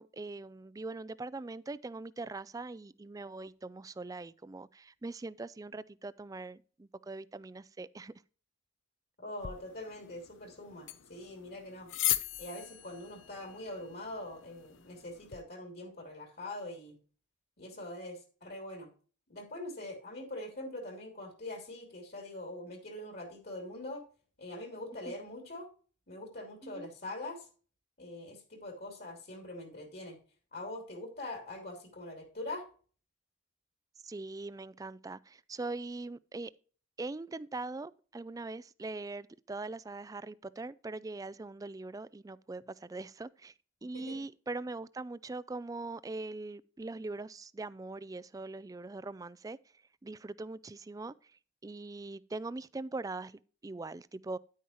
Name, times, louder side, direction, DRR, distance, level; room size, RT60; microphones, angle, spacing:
voice 1, 0.0-8.1 26.6-26.9 34.0-36.5 37.0-43.5 43.8-49.6 50.0-51.3 51.6-54.4, right 3 dB, 20° right, 0.3 m, -42 dB
voice 2, 9.2-11.9 12.4-17.0 17.6-18.9 19.3-24.0 24.4-25.7 26.1-27.5 28.0-30.2 30.5-32.6 43.9-44.2, left 1 dB, 55° left, 3.0 m, -43 dB
sound 1, 9.4-15.4, left 13 dB, 80° left, 0.7 m, -39 dB
10.0 x 9.3 x 3.0 m
head